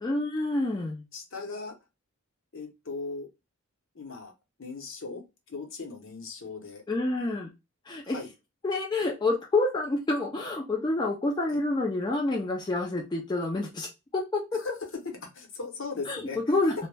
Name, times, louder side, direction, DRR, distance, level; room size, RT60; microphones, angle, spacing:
voice 1, 0.0-1.0 6.9-7.5 7.9-8.2 8.6-14.6 16.1-16.7, left 2 dB, 20° left, -1 dB, 0.3 m, -28 dB
voice 2, 1.1-1.7 2.5-3.3 3.9-4.3 4.6-6.8 8.0-8.3 14.6-16.6, left 4 dB, 60° left, 3 dB, 0.7 m, -38 dB
2.2 x 2.0 x 3.1 m, 0.24 s
head